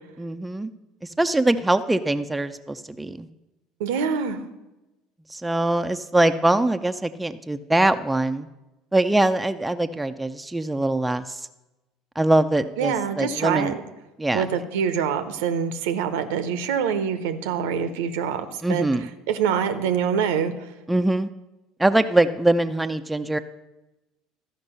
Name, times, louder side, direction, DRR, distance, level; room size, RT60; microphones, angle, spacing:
voice 1, 0.2-0.7 1.2-3.3 5.3-8.5 8.9-11.4 12.2-13.7 14.2-14.5 18.6-19.1 20.9-21.3 21.8-23.4, right 1 dB, 10° right, 8 dB, 0.5 m, -22 dB
voice 2, 3.8-4.4 12.8-13.8 14.3-18.9 19.3-20.5, right 7 dB, 70° right, 10 dB, 0.7 m, -25 dB
13.0 x 5.2 x 5.5 m, 1.0 s
hypercardioid pair, 65°, 0 cm